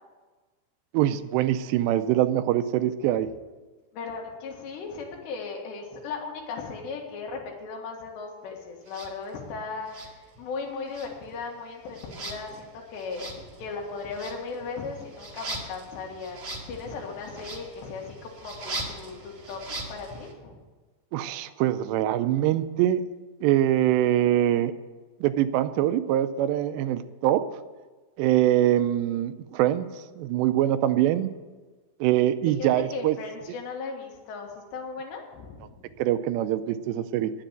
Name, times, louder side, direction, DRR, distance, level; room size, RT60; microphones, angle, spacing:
voice 1, 0.9-3.3 21.1-23.0 23.4-24.7 25.2-27.4 28.2-29.9 30.2-31.3 32.0-33.2 36.0-37.3, right 12 dB, 90° right, 11 dB, 2.8 m, -23 dB
voice 2, 3.9-20.6 32.6-35.8, left 4 dB, 85° left, 1 dB, 3.9 m, -37 dB
sound 1, 8.9-9.1 9.9-10.6 10.9-20.3, right 2 dB, 40° right, 2.0 m, -40 dB
10.0 x 7.8 x 9.1 m, 1.3 s
omnidirectional pair, 4.8 m